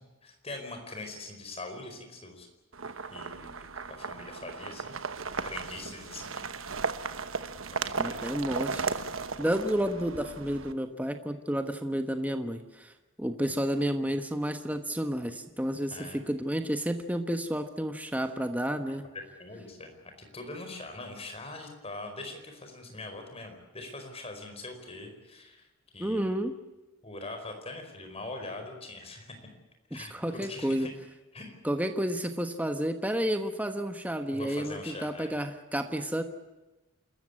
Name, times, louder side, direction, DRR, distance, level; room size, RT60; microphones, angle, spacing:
voice 1, 0.0-2.5 3.1-6.7 7.7-8.3 15.9-16.2 19.4-25.7 25.9-26.4 27.0-29.4 29.9-30.9 31.3-31.5 34.3-35.3, left 2 dB, 30° left, 5 dB, 4.8 m, -43 dB
sound 1, 2.7-10.7, right 4 dB, 65° right, 1.2 m, -36 dB
voice 2, 8.0-9.0 9.4-12.9 13.2-19.1 26.0-26.5 29.9-30.9 31.6-36.2, equal, 5° right, 7 dB, 1.2 m, -31 dB
28.0 x 14.0 x 9.8 m, 1.1 s
head